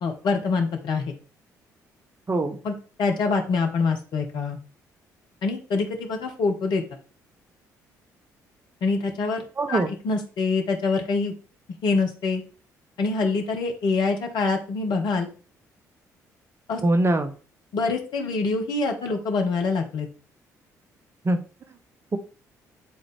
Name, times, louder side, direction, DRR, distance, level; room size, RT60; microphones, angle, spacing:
voice 1, 0.0-1.1 2.6-4.6 5.4-6.8 8.8-11.3 11.8-12.4 13.0-15.3 16.7-16.8 17.7-20.1, left 4 dB, 55° left, 3 dB, 1.4 m, -25 dB
voice 2, 2.3-2.6 9.6-9.9 16.8-17.3 21.2-21.4 22.1-22.2, right 2 dB, 30° right, 8 dB, 0.9 m, -22 dB
10.0 x 4.1 x 3.3 m, 0.38 s
figure-of-eight pair, 45°, 9 cm